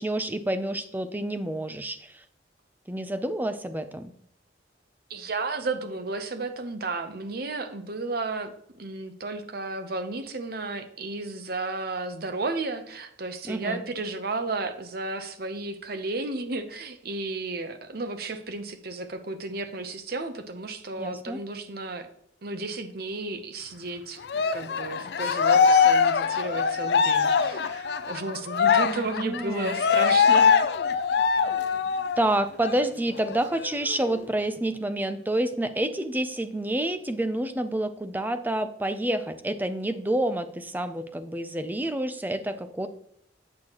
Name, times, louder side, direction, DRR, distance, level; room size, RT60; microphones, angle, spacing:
voice 1, 0.0-2.2 2.9-4.1 13.4-13.8 21.0-21.4 28.8-29.8 32.2-42.9, right 1 dB, 10° right, 10 dB, 0.4 m, -28 dB
voice 2, 5.1-22.1 22.4-30.5, right 3 dB, 55° right, 9 dB, 0.7 m, -33 dB
Cheering, 24.3-32.3 32.6-32.8 33.2-34.2, left 6 dB, 60° left, 0.4 m, -22 dB
8.6 x 6.2 x 2.9 m, 0.72 s
head